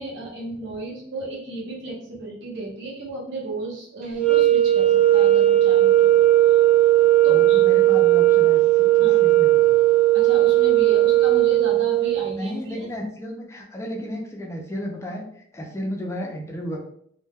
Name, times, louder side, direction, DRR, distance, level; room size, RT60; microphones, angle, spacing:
voice 1, 0.0-6.1 7.2-7.6 9.0-9.2 10.1-12.8, right 2 dB, 65° right, -2 dB, 0.8 m, -34 dB
sound 1, 4.1-12.3, right 14 dB, 40° right, 0.6 m, -17 dB
voice 2, 7.3-9.8 12.3-16.8, equal, 15° left, 0 dB, 0.5 m, -33 dB
2.2 x 2.1 x 3.3 m, 0.67 s
head